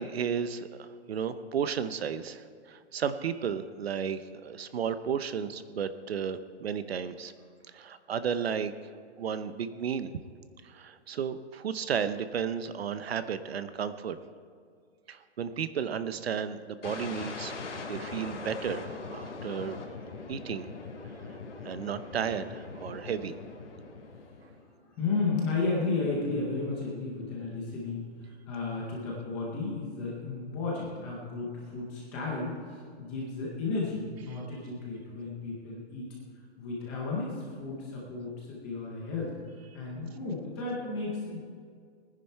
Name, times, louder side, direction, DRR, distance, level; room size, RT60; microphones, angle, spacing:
voice 1, 0.0-7.3 7.7-8.7 9.2-10.1 10.6-14.2 15.1-17.5 17.9-19.8 20.3-20.7 21.6-23.3 34.3-34.4, right 7 dB, 60° right, 12 dB, 0.8 m, -33 dB
sound 1, 16.8-24.7, left 4 dB, 80° left, 2.9 m, -41 dB
voice 2, 24.8-28.1 28.5-36.1 36.6-39.3 39.7-41.4, left 3 dB, 5° left, -4 dB, 0.6 m, -33 dB
19.5 x 10.0 x 4.5 m, 2.1 s
hypercardioid pair, 175°, 35 cm